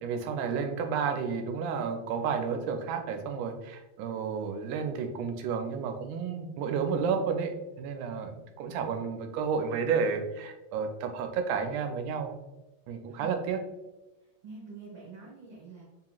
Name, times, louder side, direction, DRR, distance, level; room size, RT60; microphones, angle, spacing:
voice 1, 0.0-12.3 12.9-13.6, right 6 dB, 90° right, 5 dB, 2.1 m, -31 dB
voice 2, 14.4-15.8, right 4 dB, 65° right, -6 dB, 1.8 m, -46 dB
4.9 x 2.9 x 2.3 m, 1.0 s
omnidirectional pair, 3.5 m